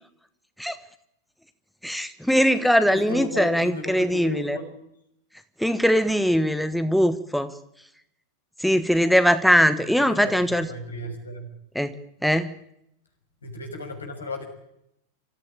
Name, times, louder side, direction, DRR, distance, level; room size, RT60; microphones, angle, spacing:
voice 1, 1.8-4.6 5.6-7.5 8.6-10.7 11.7-11.9 12.2-12.5, equal, ahead, 11 dB, 1.2 m, -21 dB
voice 2, 2.9-4.7 9.8-11.5 13.4-14.5, left 2 dB, 75° left, 3 dB, 6.0 m, -35 dB
25.5 x 15.0 x 8.9 m, 0.80 s
figure-of-eight pair, 90°, 0 cm